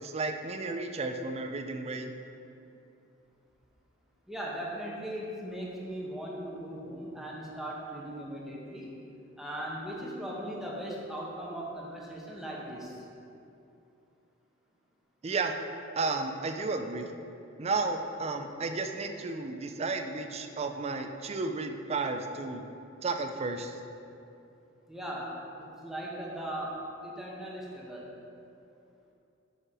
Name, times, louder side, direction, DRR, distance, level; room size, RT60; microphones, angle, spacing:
voice 1, 0.0-2.1 15.2-15.6 16.0-17.1 17.6-22.6 23.0-23.8, right 3 dB, 35° right, 6 dB, 0.4 m, -33 dB
voice 2, 4.3-8.9 9.4-12.9 24.9-28.1, right 1 dB, ahead, -4 dB, 1.0 m, -38 dB
5.7 x 5.4 x 4.8 m, 2.7 s
head